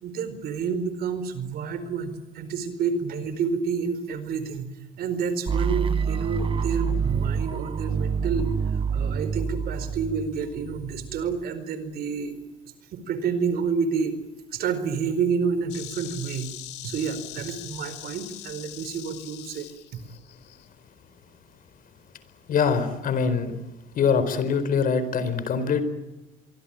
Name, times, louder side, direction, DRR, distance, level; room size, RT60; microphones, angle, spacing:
voice 1, 0.0-12.4 12.9-14.2 14.5-16.5 16.8-19.7, right 6 dB, 65° right, 12 dB, 4.5 m, -29 dB
sound 1, 5.5-11.4, right 6 dB, 30° right, 1.2 m, -27 dB
Insect, 15.7-20.7, left 14 dB, 85° left, 2.6 m, -41 dB
voice 2, 22.5-23.6 23.9-25.8, left 6 dB, 55° left, 12 dB, 4.4 m, -23 dB
25.5 x 23.5 x 9.0 m, 1.0 s
cardioid pair, 110°, 17 cm